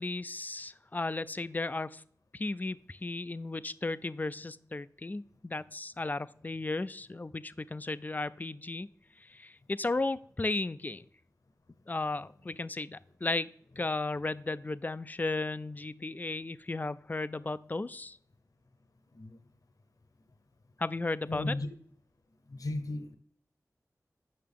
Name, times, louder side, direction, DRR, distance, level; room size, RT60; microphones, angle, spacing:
voice 1, 0.0-2.0 2.3-8.9 9.2-11.1 11.9-13.5 13.8-18.2 20.8-21.5, left 2 dB, 30° left, 0.4 m, -35 dB
voice 2, 19.1-19.4 21.3-21.7 22.5-23.1, left 2 dB, 70° left, 0.8 m, -35 dB
8.5 x 5.8 x 3.6 m
wide cardioid pair, 60°, 6 cm